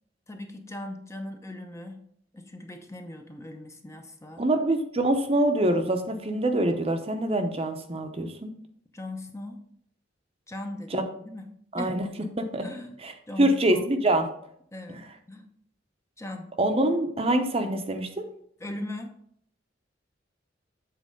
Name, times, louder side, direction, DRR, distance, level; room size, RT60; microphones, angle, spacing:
voice 1, 0.3-2.0 2.3-4.5 8.9-9.6 10.5-11.5 11.7-12.0 12.6-13.0 13.3-13.9 14.7-15.5 16.2-16.5 18.6-19.1, left 1 dB, 15° left, 4 dB, 0.7 m, -39 dB
voice 2, 4.4-8.5 10.9-11.0 11.7-12.0 12.4-12.7 13.0-13.1 13.4-14.3 14.9-15.0 16.6-18.2, right 1 dB, 30° right, 6 dB, 0.7 m, -25 dB
7.6 x 4.2 x 5.1 m, 0.66 s
head